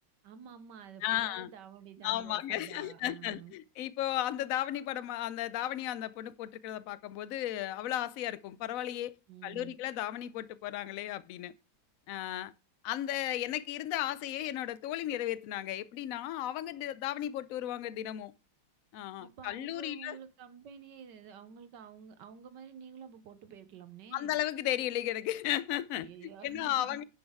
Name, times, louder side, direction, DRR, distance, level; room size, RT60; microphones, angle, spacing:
voice 1, 0.2-3.5 9.3-9.8 19.2-24.3 25.9-27.0, right 7 dB, 70° right, 1.4 m, -50 dB
voice 2, 1.0-1.5 2.0-9.1 9.4-11.5 12.1-12.5 12.8-18.3 18.9-20.2 24.1-26.1 26.4-27.0, left 13 dB, 70° left, 0.8 m, -35 dB
10.5 x 6.4 x 3.5 m
omnidirectional pair, 2.1 m